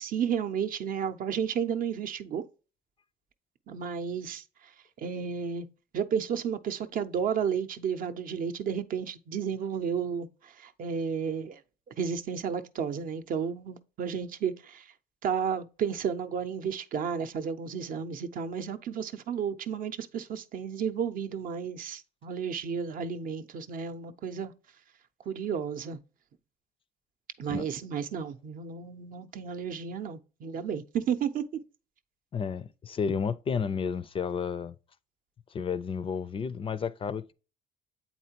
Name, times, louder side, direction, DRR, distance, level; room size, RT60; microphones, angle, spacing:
voice 1, 0.0-2.4 3.7-4.7 5.0-5.7 5.9-11.6 12.0-14.9 15.2-24.5 25.3-26.0 27.4-31.4, right 7 dB, 55° right, 0.6 m, -32 dB
voice 2, 32.3-34.7 35.5-37.3, left 6 dB, 30° left, 0.4 m, -31 dB
8.0 x 4.2 x 2.8 m
cardioid pair, 110°, 17 cm